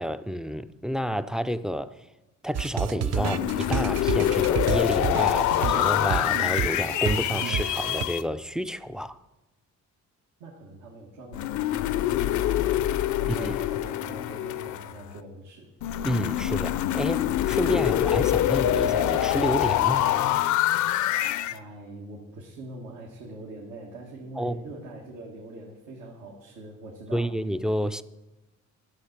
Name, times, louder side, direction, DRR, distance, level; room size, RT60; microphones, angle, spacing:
voice 1, 0.0-2.1 2.4-9.2 13.3-13.6 16.0-20.1 24.4-24.6 27.1-28.0, equal, ahead, 0.3 m, -29 dB
sound 1, 2.5-8.0, right 8 dB, 55° right, 0.6 m, -30 dB
sound 2, 3.1-8.2 11.3-15.1 15.8-21.6, left 12 dB, 75° left, 0.5 m, -25 dB
voice 2, 10.4-12.8 13.2-15.7 21.5-27.3, right 2 dB, 85° right, 1.7 m, -43 dB
11.5 x 6.5 x 6.6 m
cardioid pair, 90°, 30 cm